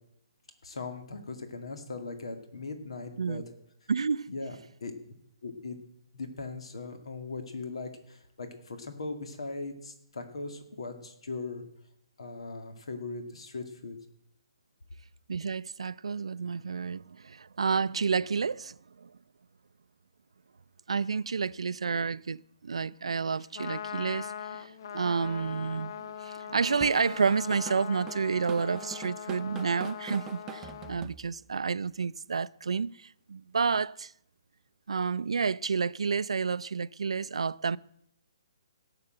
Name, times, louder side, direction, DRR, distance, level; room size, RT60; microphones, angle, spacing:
voice 1, 0.6-3.4 4.3-4.9 5.4-5.8 6.1-11.6 12.2-14.0, left 3 dB, 75° left, 2.2 m, -39 dB
voice 2, 3.9-4.3 15.3-19.1 20.9-34.1 34.9-37.8, right 5 dB, 90° right, 0.4 m, -30 dB
Trumpet, 23.4-31.0, left 8 dB, 50° left, 0.6 m, -41 dB
Drum kit / Drum, 26.8-31.6, right 10 dB, 15° right, 0.4 m, -44 dB
17.0 x 6.7 x 7.8 m
hypercardioid pair, 160°, 3 cm